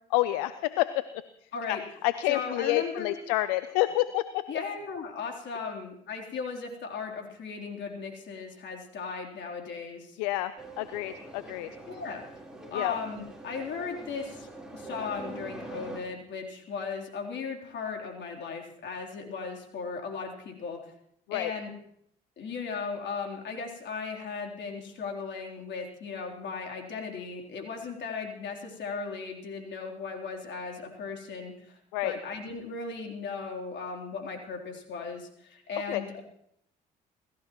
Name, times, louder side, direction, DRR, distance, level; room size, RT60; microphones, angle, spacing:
voice 1, 0.1-1.2 1.7-1.8 2.0-4.4 10.2-11.7 12.7-12.9 21.3-21.5 31.9-32.1 35.9-36.0, left 16 dB, 85° left, 14 dB, 0.6 m, -28 dB
voice 2, 2.3-3.2 4.5-10.2 11.9-12.2 12.7-20.9 21.3-21.7 22.4-36.2, left 5 dB, 60° left, 1 dB, 3.7 m, -37 dB
sound 1, 10.6-16.0, right 2 dB, 5° right, 4.2 m, -44 dB
29.5 x 14.0 x 3.1 m, 0.73 s
hypercardioid pair, 55°, 20 cm